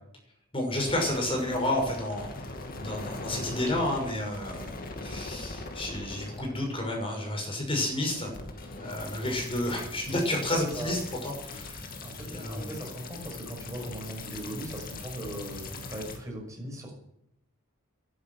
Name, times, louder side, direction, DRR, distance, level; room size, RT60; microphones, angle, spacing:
voice 1, 0.5-2.5 2.8-4.8 5.0-8.3 8.7-11.8 12.2-12.7, left 1 dB, 25° left, 0 dB, 6.3 m, -31 dB
sound 1, 0.8-16.2, left 2 dB, 40° left, 2.4 m, -41 dB
voice 2, 10.5-10.9 12.0-16.9, right 1 dB, 15° right, -1 dB, 5.8 m, -39 dB
12.5 x 11.0 x 9.6 m, 0.80 s
head